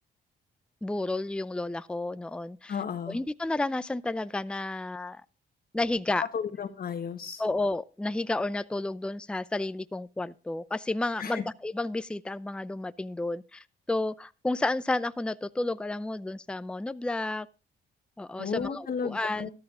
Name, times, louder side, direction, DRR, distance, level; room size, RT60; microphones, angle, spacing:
voice 1, 0.8-2.8 3.1-5.2 5.7-6.2 7.4-17.5 18.2-19.5, left 2 dB, 5° left, 0.5 m, -31 dB
voice 2, 2.7-3.2 6.3-7.4 11.2-11.4 18.4-19.5, left 6 dB, 45° left, 1.3 m, -33 dB
13.5 x 11.5 x 3.7 m
cardioid pair, 90°, 20 cm